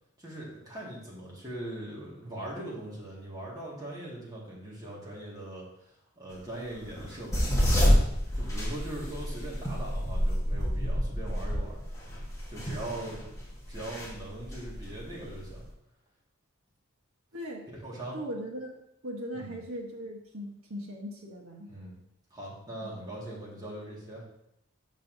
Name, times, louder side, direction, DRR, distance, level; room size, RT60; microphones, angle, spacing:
voice 1, 0.2-7.6 8.3-11.8 12.5-13.2 13.7-15.6 17.7-18.2 19.3-19.6 21.7-22.0 22.3-24.3, right 1 dB, 20° right, -6 dB, 1.9 m, -41 dB
sound 1, 6.8-15.6, equal, 15° left, 1.3 m, -28 dB
voice 2, 17.3-17.7 18.1-18.7 19.0-21.7 22.8-23.2, equal, 80° right, 0 dB, 1.2 m, -39 dB
6.9 x 5.5 x 2.7 m, 0.78 s
head